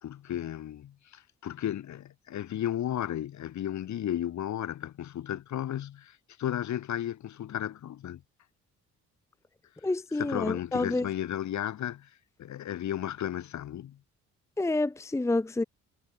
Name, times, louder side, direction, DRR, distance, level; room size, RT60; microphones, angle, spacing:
voice 1, 0.0-8.2 10.1-12.1 12.4-14.0, left 11 dB, 70° left, 3.2 m, -34 dB
voice 2, 9.8-11.1 14.6-15.6, left 2 dB, 10° left, 0.8 m, -28 dB
cardioid pair, 90°, 30 cm